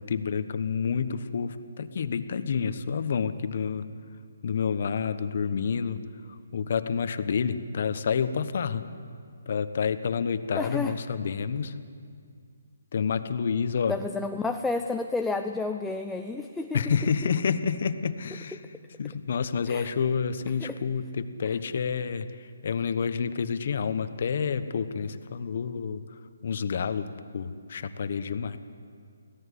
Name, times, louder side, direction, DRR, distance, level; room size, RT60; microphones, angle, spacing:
voice 1, 0.0-3.8 4.4-6.0 6.5-8.8 9.5-11.7 12.9-13.9 16.7-18.6 19.0-22.3 22.6-26.0 26.4-27.1 27.3-28.6, left 6 dB, 50° left, 11 dB, 1.1 m, -28 dB
voice 2, 10.5-11.0 13.9-17.1 18.6-18.7 19.7-19.9 20.6-20.8, left 3 dB, 5° left, 5 dB, 0.5 m, -31 dB
25.0 x 17.0 x 8.4 m, 2.2 s
hypercardioid pair, 165°, 0 cm